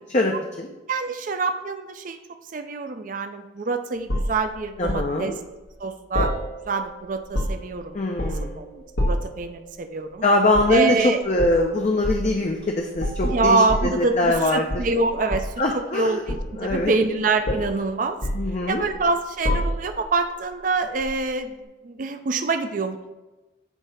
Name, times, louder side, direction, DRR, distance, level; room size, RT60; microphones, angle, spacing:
voice 1, 0.1-0.7 4.8-5.4 7.9-8.6 10.2-11.0 11.3-14.8 15.6-16.2 16.6-16.9 18.3-18.8, left 2 dB, 40° left, 2 dB, 0.5 m, -23 dB
voice 2, 0.9-2.2 2.5-5.3 5.8-6.3 6.7-8.0 8.6-10.2 10.7-11.2 13.2-15.5 15.9-18.2 18.7-21.5 21.8-23.1, right 3 dB, 45° right, 7 dB, 0.4 m, -25 dB
sound 1, 4.1-5.1 6.1-6.9 7.2-7.8 8.2-8.5 9.0-9.4 10.5-10.8 11.4-11.6 12.0-12.3 13.0-14.4 14.7-15.6 16.3-17.1 17.5-17.8 18.2-19.0 19.4-20.1 21.0-21.2, equal, 90° left, 1.3 m, -27 dB
8.1 x 2.8 x 5.6 m, 1.1 s
head